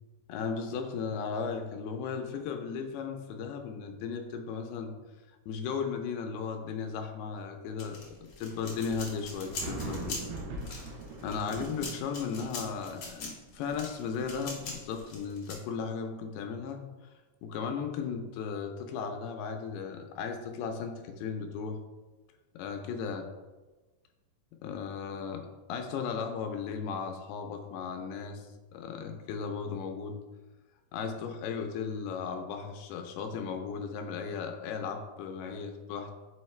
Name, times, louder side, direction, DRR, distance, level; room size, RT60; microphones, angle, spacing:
voice 1, 0.3-4.9 5.5-10.2 11.2-16.8 17.4-21.8 22.6-23.3 24.6-28.5 28.7-30.2 30.9-36.1, left 6 dB, 80° left, 5 dB, 2.5 m, -36 dB
sound 1, 7.8-15.5, left 3 dB, 65° left, 1.5 m, -42 dB
sound 2, 8.5-14.7, right 3 dB, 75° right, 2.5 m, -42 dB
6.4 x 5.0 x 3.1 m, 1.2 s
omnidirectional pair, 4.8 m